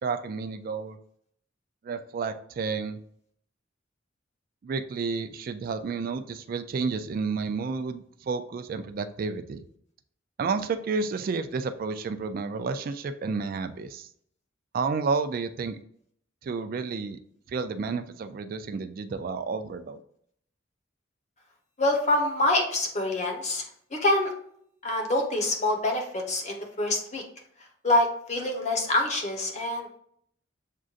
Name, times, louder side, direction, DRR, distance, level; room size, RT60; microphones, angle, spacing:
voice 1, 0.0-1.0 1.8-3.0 4.6-9.6 10.4-14.1 14.7-15.8 16.4-17.2 17.5-20.0, right 4 dB, 50° right, 10 dB, 0.3 m, -31 dB
voice 2, 21.8-23.6 23.9-24.3 24.8-27.2 27.8-30.0, left 1 dB, 35° left, 2 dB, 1.0 m, -26 dB
7.3 x 2.5 x 2.4 m, 0.67 s
head